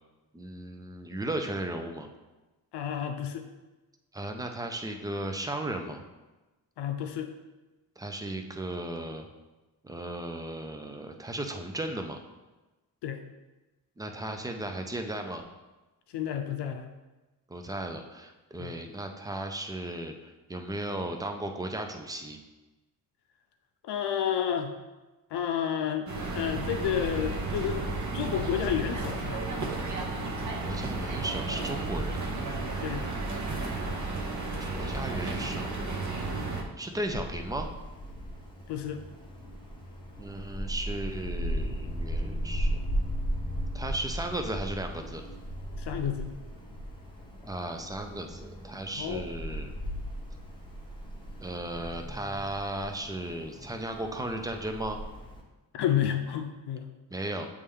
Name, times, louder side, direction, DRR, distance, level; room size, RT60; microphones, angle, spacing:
voice 1, 0.3-2.1 4.1-6.0 8.0-9.3 9.8-12.2 14.0-15.4 17.5-22.4 30.6-32.2 34.6-35.7 36.8-37.7 40.2-42.7 43.7-45.2 47.4-49.7 51.4-55.0 57.1-57.5, right 1 dB, 10° right, 4 dB, 0.4 m, -35 dB
voice 2, 2.7-3.4 6.8-7.3 13.0-13.2 16.1-16.9 18.6-18.7 23.8-24.7 25.3-26.1 26.3-27.8 28.1-29.5 32.8-33.1 38.7-39.0 45.7-46.3 49.0-49.3 55.7-56.9, left 9 dB, 85° left, 6 dB, 0.6 m, -30 dB
sound 1, 26.1-36.6, right 3 dB, 50° right, 0.9 m, -33 dB
Wind, 36.8-55.4, equal, 10° left, 0.9 m, -36 dB
8.3 x 3.3 x 3.6 m, 1.1 s
wide cardioid pair, 145°, 39 cm